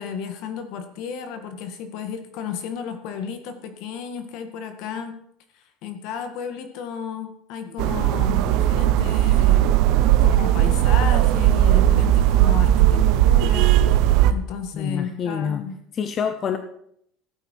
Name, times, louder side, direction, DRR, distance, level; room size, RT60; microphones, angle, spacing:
voice 1, 0.0-5.1 5.8-9.7 10.2-15.8, left 6 dB, 55° left, 8 dB, 1.8 m, -33 dB
sound 1, 7.8-14.3, right 12 dB, 55° right, 0.7 m, -17 dB
voice 2, 14.7-15.6 15.9-16.6, left 7 dB, 25° left, 9 dB, 0.6 m, -26 dB
16.0 x 8.8 x 4.6 m, 0.72 s
cardioid pair, 170°, 0 cm